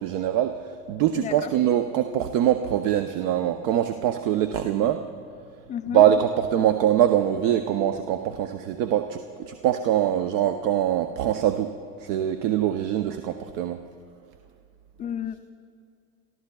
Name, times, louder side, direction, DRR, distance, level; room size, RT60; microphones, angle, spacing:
voice 1, 0.0-5.0 5.9-11.7 12.0-13.8, right 10 dB, 50° right, 8 dB, 0.7 m, -23 dB
voice 2, 1.2-1.5 5.7-6.0 15.0-15.4, left 9 dB, 15° left, 9 dB, 0.4 m, -31 dB
29.0 x 13.5 x 2.3 m, 2.2 s
hypercardioid pair, 95°, 47 cm